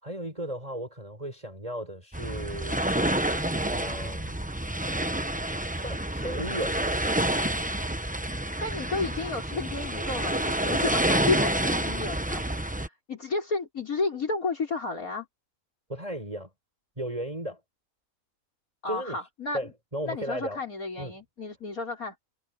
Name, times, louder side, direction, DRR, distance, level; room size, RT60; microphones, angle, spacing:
voice 1, 0.0-3.0 3.5-4.4 5.7-7.1 15.9-16.5 17.0-17.6 18.9-19.2 19.5-20.6 21.0-21.2, right 1 dB, 25° right, 7.2 m, -35 dB
sound 1, 2.1-12.9, right 1 dB, 5° right, 0.9 m, -28 dB
voice 2, 8.6-15.3 18.8-19.6 20.1-22.1, left 3 dB, 85° left, 6.1 m, -32 dB
omnidirectional pair, 1.5 m